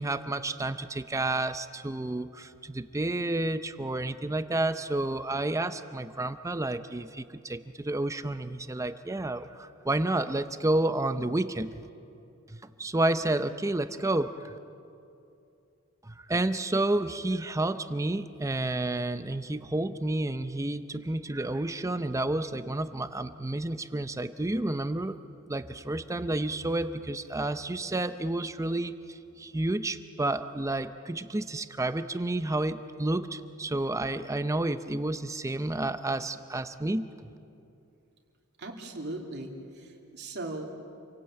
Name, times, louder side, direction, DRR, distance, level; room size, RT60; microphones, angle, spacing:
voice 1, 0.0-11.7 12.5-14.6 16.0-25.2 25.5-37.1, right 2 dB, 15° right, 11 dB, 0.6 m, -30 dB
voice 2, 38.6-39.5 39.8-40.8, right 2 dB, 55° right, 1 dB, 2.8 m, -38 dB
27.5 x 17.5 x 8.8 m, 2.6 s
head